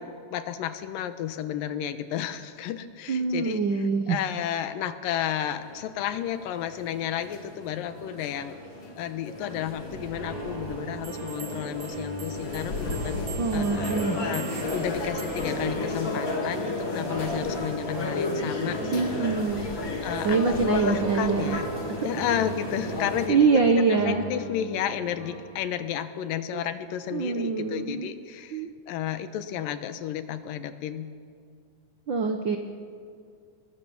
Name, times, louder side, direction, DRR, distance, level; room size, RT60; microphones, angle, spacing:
voice 1, 0.0-8.6 9.0-13.2 13.5-19.3 20.0-21.7 22.0-31.1, left 10 dB, 90° left, 11 dB, 2.8 m, -32 dB
voice 2, 3.1-4.2 13.4-14.2 18.9-19.6 20.2-21.5 22.0-22.4 23.3-24.2 27.1-28.1 28.5-28.7 32.1-32.6, right 4 dB, 85° right, 5 dB, 1.0 m, -24 dB
sound 1, 5.3-23.3, left 2 dB, 35° left, 3.1 m, -33 dB
sound 2, 9.9-25.5, right 1 dB, 70° right, 5.8 m, -40 dB
sound 3, 11.0-15.7, right 8 dB, 55° right, 2.8 m, -44 dB
25.0 x 21.0 x 7.2 m, 2.2 s
omnidirectional pair, 3.9 m